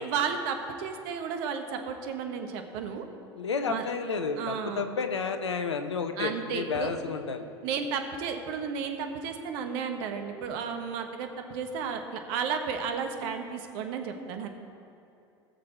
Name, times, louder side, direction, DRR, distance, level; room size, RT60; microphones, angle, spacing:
voice 1, 0.0-3.0 3.7-3.8 4.4-5.0 6.2-6.9 7.6-14.5, right 6 dB, 55° right, 5 dB, 1.3 m, -33 dB
voice 2, 3.3-7.5, left 5 dB, 85° left, 8 dB, 0.8 m, -31 dB
19.5 x 6.5 x 4.3 m, 2.6 s
figure-of-eight pair, 80°, 14 cm